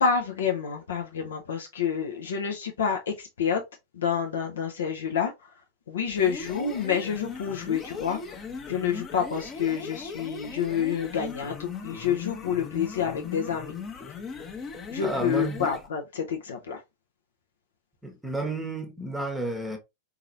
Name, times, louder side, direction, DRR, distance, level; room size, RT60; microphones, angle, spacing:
voice 1, 0.0-3.6 4.0-5.3 5.9-8.4 8.7-13.7 14.9-16.8, left 7 dB, 65° left, 0.6 m, -28 dB
sound 1, 6.1-15.9, left 5 dB, 25° left, 0.8 m, -38 dB
voice 2, 15.0-15.7 18.0-19.8, right 2 dB, 5° right, 0.9 m, -31 dB
4.0 x 2.9 x 2.6 m
figure-of-eight pair, 90°, 0 cm